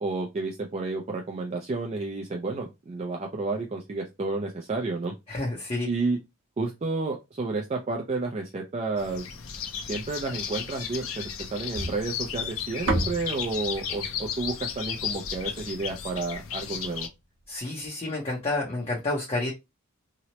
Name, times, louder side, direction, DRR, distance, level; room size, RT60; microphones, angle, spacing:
voice 1, 0.0-5.1 5.9-6.2 6.6-9.2 9.9-17.1, right 3 dB, 30° right, 1 dB, 0.3 m, -31 dB
voice 2, 5.3-5.9 17.5-19.5, left 2 dB, 30° left, -3 dB, 0.6 m, -29 dB
sound 1, 9.0-17.1, left 7 dB, 80° left, 0.5 m, -34 dB
sound 2, 11.7-16.0, right 2 dB, 60° right, 0.9 m, -33 dB
2.8 x 2.0 x 2.8 m, 0.23 s
head